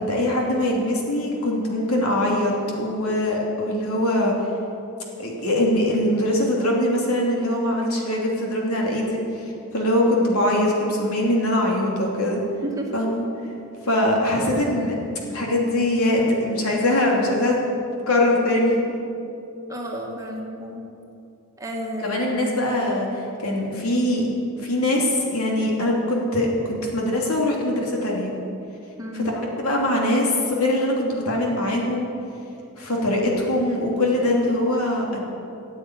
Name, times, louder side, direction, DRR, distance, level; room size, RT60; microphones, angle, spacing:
voice 1, 0.0-2.5 2.8-4.3 5.2-12.4 12.9-13.2 13.8-14.9 15.3-17.6 18.1-18.8 22.0-23.1 23.4-24.2 24.6-28.4 29.1-29.2 29.6-32.0 32.8-35.2, left 1 dB, 80° left, -1 dB, 3.0 m, -22 dB
voice 2, 12.6-13.0 14.3-14.5 19.7-20.8 21.6-22.5 29.0-29.3, equal, 15° right, -1 dB, 1.7 m, -32 dB
14.5 x 8.0 x 9.4 m, 2.8 s
head